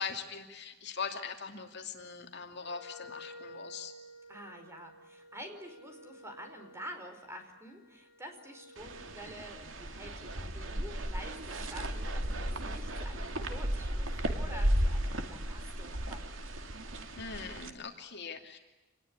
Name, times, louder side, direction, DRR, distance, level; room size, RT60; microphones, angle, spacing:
voice 1, 0.0-3.9 17.2-18.6, left 5 dB, 60° left, 5 dB, 2.7 m, -41 dB
Wind instrument woodwind instrument, 2.5-9.2, left 1 dB, 75° left, 6.1 m, -53 dB
voice 2, 4.3-16.3, equal, 15° right, 6 dB, 4.8 m, -48 dB
sound 1, 8.8-17.7, right 1 dB, 80° right, 2.4 m, -34 dB
27.0 x 20.5 x 9.7 m, 1.1 s
head